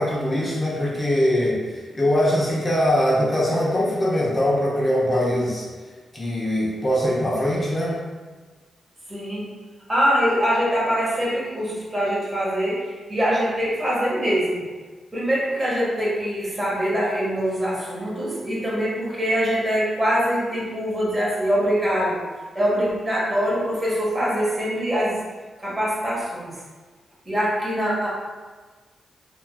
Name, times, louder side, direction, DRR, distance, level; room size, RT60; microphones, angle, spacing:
voice 1, 0.0-5.6 6.1-8.0, equal, 30° left, -5 dB, 0.6 m, -22 dB
voice 2, 9.1-9.5 9.9-14.6 15.1-22.2 22.5-25.1 25.6-26.5 27.2-28.1, equal, 25° right, -7 dB, 1.4 m, -23 dB
3.4 x 2.8 x 2.2 m, 1.4 s
cardioid pair, 75°, 0 cm